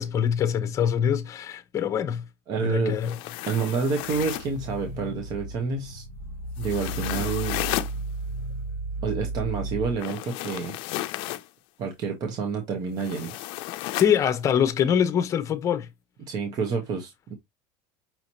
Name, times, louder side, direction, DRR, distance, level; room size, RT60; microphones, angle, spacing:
voice 1, 0.0-2.2 2.6-3.1 14.0-15.9, left 8 dB, 30° left, 0.8 m, -24 dB
voice 2, 2.5-3.0 3.5-6.0 6.6-7.6 9.0-10.8 11.8-13.4 16.3-17.3, right 5 dB, 40° right, 0.9 m, -28 dB
sound 1, 2.9-4.6 6.6-7.9 10.0-11.5 13.0-14.2, left 17 dB, 55° left, 0.5 m, -33 dB
sound 2, 4.0-10.0, right 2 dB, 75° right, 2.4 m, -34 dB
5.8 x 2.8 x 2.8 m
supercardioid pair, 145°, 10 cm